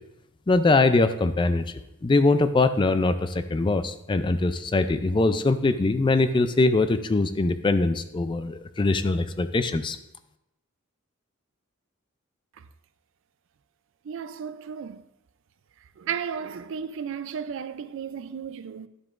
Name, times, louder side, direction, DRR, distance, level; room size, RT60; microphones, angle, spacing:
voice 1, 0.5-1.6 2.0-10.0, left 3 dB, 25° left, 0.3 m, -22 dB
voice 2, 14.0-15.0 16.0-18.9, right 7 dB, 60° right, 0.4 m, -34 dB
11.0 x 7.6 x 2.5 m
head